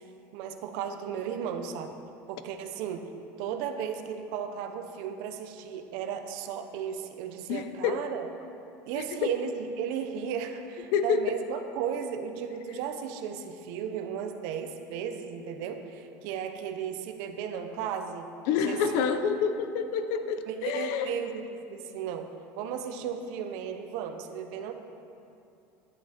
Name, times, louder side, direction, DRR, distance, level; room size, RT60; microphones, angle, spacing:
voice 1, 0.3-1.9 2.3-3.1 3.4-8.3 8.8-19.0 20.5-24.7, right 8 dB, 60° right, 6 dB, 0.8 m, -35 dB
voice 2, 7.5-8.0 10.9-11.2 18.5-21.2, left 7 dB, 60° left, 9 dB, 0.7 m, -28 dB
11.0 x 10.0 x 4.4 m, 2.7 s
cardioid pair, 170°, 7 cm